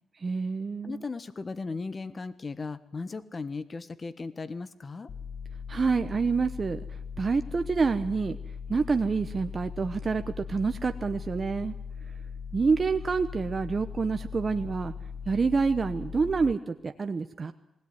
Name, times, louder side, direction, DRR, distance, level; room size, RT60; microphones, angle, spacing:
voice 1, 0.2-1.0 5.7-6.8 7.2-8.4 8.7-11.7 12.5-14.9 15.3-17.5, right 4 dB, 35° right, 8 dB, 0.9 m, -27 dB
voice 2, 0.8-5.1, left 4 dB, 35° left, 13 dB, 1.3 m, -37 dB
sound 1, 5.1-16.5, left 6 dB, 55° left, 0.9 m, -39 dB
20.0 x 17.0 x 9.5 m, 0.88 s
cardioid pair, 95°, 0 cm